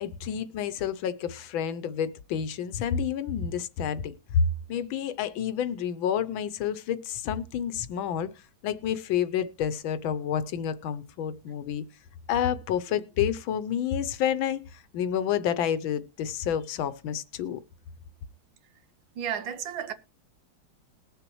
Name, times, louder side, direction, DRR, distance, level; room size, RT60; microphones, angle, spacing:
voice 1, 0.0-8.3 8.6-11.8 12.3-17.6, left 8 dB, 75° left, 1.5 m, -29 dB
voice 2, 19.1-19.9, right 9 dB, 70° right, 1.6 m, -33 dB
20.5 x 6.9 x 3.0 m
omnidirectional pair, 2.2 m